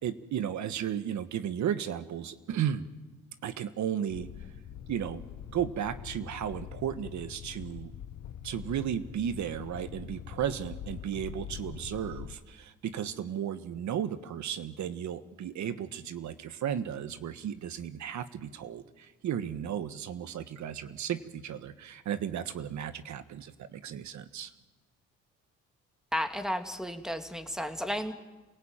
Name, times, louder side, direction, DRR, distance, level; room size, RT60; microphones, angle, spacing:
voice 1, 0.0-2.8 3.4-4.3 4.9-5.2 5.5-7.9 8.4-24.5, right 9 dB, 70° right, 12 dB, 1.6 m, -34 dB
sound 1, 4.1-12.4, left 9 dB, 65° left, 1.3 m, -44 dB
voice 2, 26.1-28.1, equal, ahead, 7 dB, 2.4 m, -33 dB
27.5 x 18.0 x 9.0 m, 1.2 s
cardioid pair, 90°, 30 cm